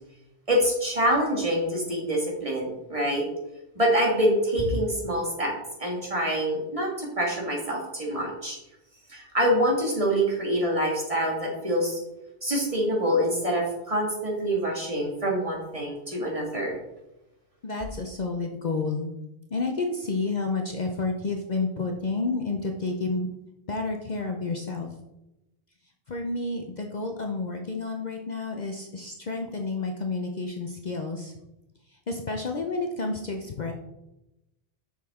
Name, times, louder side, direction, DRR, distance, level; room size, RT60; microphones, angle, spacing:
voice 1, 0.5-3.2 3.8-5.5 5.8-8.6 9.1-12.0 12.4-16.8, equal, 30° right, -2 dB, 1.9 m, -26 dB
voice 2, 17.6-19.1 19.5-23.3 23.7-24.9 26.1-31.3 32.1-33.7, left 3 dB, 45° left, 3 dB, 0.7 m, -30 dB
7.2 x 6.1 x 3.6 m, 0.92 s
omnidirectional pair, 1.1 m